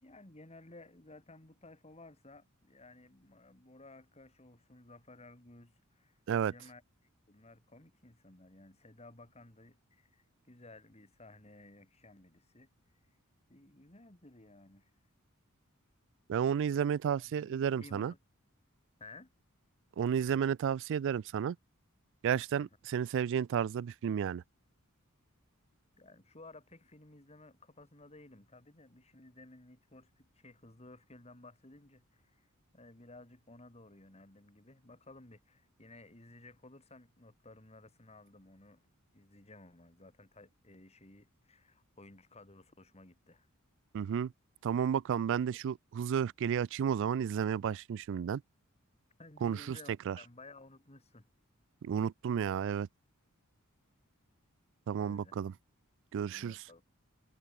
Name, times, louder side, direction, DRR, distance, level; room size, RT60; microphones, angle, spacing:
voice 1, 0.0-6.8 7.3-12.7 13.5-14.9 17.1-18.2 19.0-19.3 22.5-22.7 26.0-32.5 32.7-38.8 39.1-43.5 49.2-51.3 55.0-55.4 56.3-56.8, left 2 dB, 30° left, 3.0 m, -56 dB
voice 2, 16.3-18.1 20.0-21.6 22.2-24.4 43.9-44.3 44.6-48.4 49.4-49.8 50.1-50.2 51.8-52.9 54.9-55.5 56.1-56.6, right 8 dB, 55° right, 0.3 m, -32 dB
head